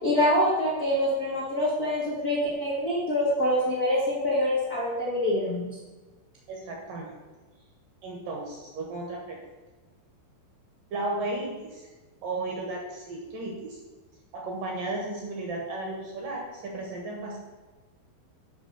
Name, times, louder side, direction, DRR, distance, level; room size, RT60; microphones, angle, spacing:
voice 1, 0.0-5.7, left 1 dB, 90° left, -7 dB, 0.8 m, -25 dB
voice 2, 6.5-7.2 8.0-9.5 10.9-11.9 12.2-13.8 14.3-17.4, right 2 dB, 65° right, -1 dB, 2.3 m, -34 dB
9.0 x 5.4 x 6.7 m, 1.3 s
omnidirectional pair, 5.6 m